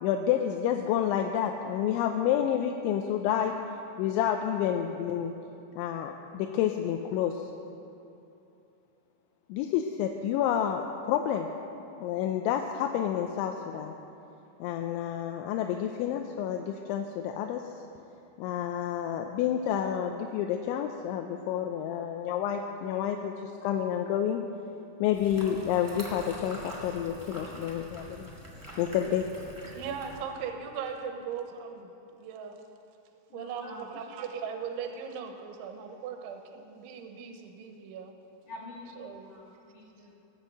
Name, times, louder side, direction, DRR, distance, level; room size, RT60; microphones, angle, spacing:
voice 1, 0.0-3.5 4.0-5.3 5.8-7.4 9.5-11.5 12.0-13.9 14.6-17.6 18.4-24.4 25.0-28.3 28.8-29.2, left 9 dB, 85° left, 4 dB, 3.0 m, -29 dB
sound 1, 25.1-30.2, right 1 dB, 30° right, 0.3 m, -44 dB
voice 2, 29.8-31.9 32.2-32.6 33.3-38.2 39.0-39.3, right 6 dB, 85° right, 4 dB, 3.5 m, -38 dB
voice 3, 33.3-34.0 38.5-38.9 39.2-40.1, left 2 dB, 55° left, -4 dB, 2.4 m, -46 dB
19.0 x 8.2 x 7.9 m, 2.8 s
omnidirectional pair, 5.4 m